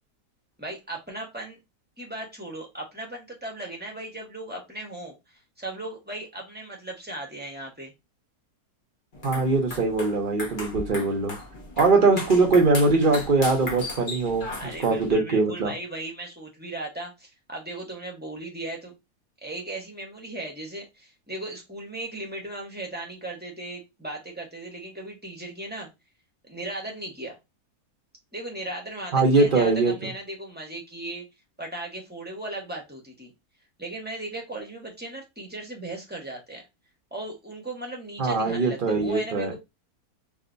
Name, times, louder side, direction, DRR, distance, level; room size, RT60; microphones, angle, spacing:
voice 1, 0.6-1.6 2.0-7.9 14.6-18.9 19.4-25.9 26.4-27.4 28.3-31.2 31.6-33.3 33.8-36.6 37.1-39.6, right 1 dB, 5° right, 1.0 m, -37 dB
sound 1, 9.1-15.1, left 2 dB, 35° left, 1.2 m, -37 dB
voice 2, 9.2-11.3 11.8-15.7 29.1-29.9 38.2-39.6, right 3 dB, 40° right, 0.9 m, -22 dB
4.9 x 2.6 x 2.6 m
omnidirectional pair, 1.7 m